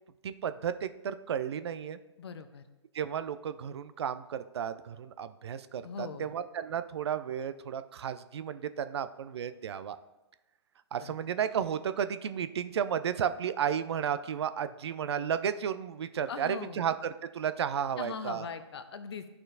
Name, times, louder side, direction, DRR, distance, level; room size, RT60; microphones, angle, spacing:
voice 1, 0.2-2.0 2.9-10.0 10.9-18.5, right 8 dB, 65° right, 12 dB, 0.4 m, -33 dB
voice 2, 2.2-2.6 5.8-6.3 11.0-11.1 16.3-16.8 18.0-19.4, left 6 dB, 65° left, 10 dB, 0.7 m, -40 dB
12.0 x 4.3 x 2.6 m, 1.0 s
figure-of-eight pair, 125°, 15 cm